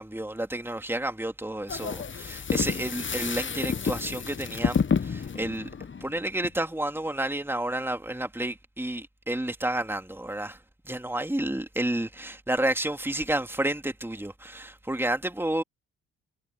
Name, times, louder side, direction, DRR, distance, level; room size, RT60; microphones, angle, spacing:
voice 1, 0.0-5.7 6.0-10.6 10.8-15.6, right 1 dB, 5° right, 3.3 m, -30 dB
sound 1, 1.7-6.5, left 6 dB, 25° left, 1.1 m, -30 dB
hypercardioid pair, 45°, 44 cm